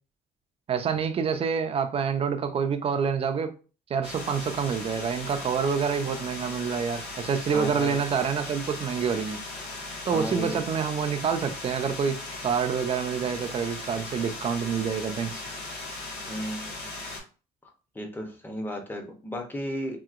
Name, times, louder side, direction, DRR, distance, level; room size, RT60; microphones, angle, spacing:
voice 1, 0.7-3.5 3.9-9.4 10.0-12.2 12.4-15.4, right 6 dB, 35° right, 0.5 m, -27 dB
sound 1, 4.0-17.2, left 2 dB, 75° left, 1.3 m, -38 dB
voice 2, 7.5-8.0 10.0-10.6 16.3-16.8 17.9-20.0, equal, 10° left, 0.7 m, -34 dB
2.8 x 2.8 x 2.4 m
cardioid pair, 110°, 17 cm